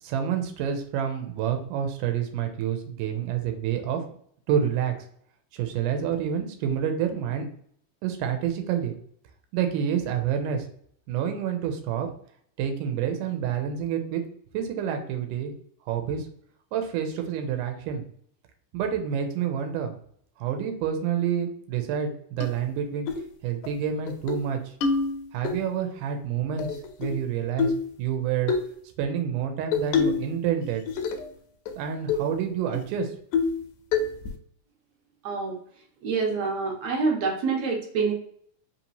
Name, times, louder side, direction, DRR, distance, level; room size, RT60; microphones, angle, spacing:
voice 1, 0.0-4.0 4.5-5.1 5.5-7.5 8.0-8.9 9.5-10.7 11.1-12.1 12.6-14.2 14.5-15.5 15.9-16.3 16.7-18.0 18.7-19.9 20.4-23.1 23.4-24.6 25.3-27.7 28.0-28.5 29.0-30.8 31.8-33.1, right 8 dB, 90° right, 5 dB, 2.2 m, -28 dB
sound 1, 22.4-22.5 23.1-23.3 23.6-23.7 24.1-24.4 24.8-25.5 26.6-27.2 27.6-27.9 28.5-28.7 29.7-30.3 30.6-31.3 31.7-31.8 32.1-32.3 32.7-32.8 33.3-33.6 33.9-34.3, left 5 dB, 80° left, 1.8 m, -26 dB
voice 2, 35.2-35.6 36.0-38.1, right 4 dB, 70° right, -1 dB, 1.8 m, -26 dB
5.0 x 2.9 x 2.7 m, 0.63 s
omnidirectional pair, 3.6 m